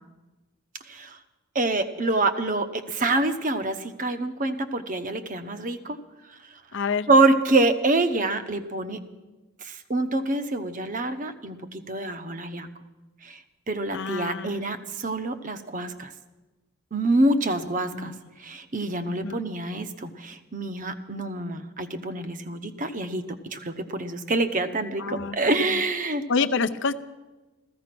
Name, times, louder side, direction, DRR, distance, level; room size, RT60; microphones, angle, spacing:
voice 1, 1.5-6.0 7.1-9.0 9.6-12.7 13.2-13.4 13.7-16.1 16.9-18.1 18.4-26.2, right 2 dB, 35° right, 10 dB, 0.8 m, -26 dB
voice 2, 6.7-7.1 13.9-14.6 17.9-18.2 19.0-19.4 25.0-25.8 26.3-26.9, left 4 dB, 55° left, 10 dB, 0.6 m, -28 dB
15.0 x 14.5 x 6.0 m, 1.2 s
head